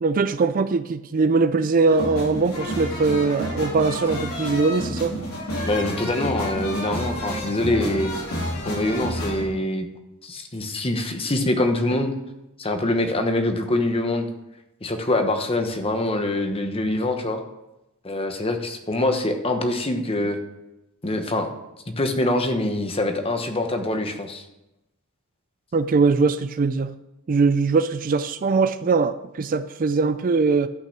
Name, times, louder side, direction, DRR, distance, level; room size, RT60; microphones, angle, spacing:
voice 1, 0.0-5.1 25.7-26.9 27.3-30.7, right 4 dB, 40° right, 12 dB, 0.4 m, -21 dB
sound 1, 1.9-9.4, equal, 80° left, 3.6 m, -30 dB
voice 2, 5.6-8.1 8.6-9.9 10.2-12.1 12.6-14.3 14.8-17.4 18.0-20.4 21.0-21.5 21.9-24.4, left 1 dB, 25° left, 5 dB, 1.1 m, -24 dB
12.0 x 5.8 x 5.9 m, 0.93 s
head